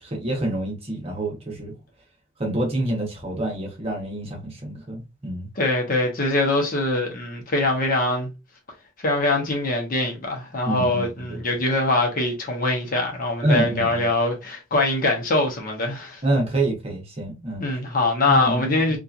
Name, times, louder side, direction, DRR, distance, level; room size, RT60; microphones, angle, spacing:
voice 1, 0.0-1.7 2.4-5.5 10.6-11.4 13.4-14.1 16.2-17.6 18.3-19.0, right 1 dB, 30° right, 1.0 m, -27 dB
voice 2, 5.6-8.3 9.0-16.2 17.6-19.0, left 2 dB, 45° left, 0.8 m, -23 dB
2.8 x 2.4 x 2.4 m
head